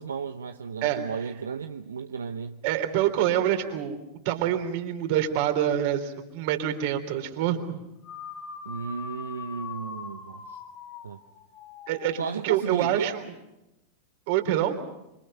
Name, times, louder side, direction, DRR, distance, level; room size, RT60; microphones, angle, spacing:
voice 1, 0.0-2.6 8.7-10.6 11.0-11.2 12.2-13.2, right 6 dB, 80° right, 0.9 m, -34 dB
voice 2, 2.6-4.0 4.3-7.8 11.9-12.2 12.4-13.2 14.3-14.8, right 11 dB, 55° right, 3.6 m, -26 dB
sound 1, 8.0-12.6, left 6 dB, 50° left, 4.6 m, -42 dB
27.5 x 25.0 x 5.7 m
hypercardioid pair, 90°, 0 cm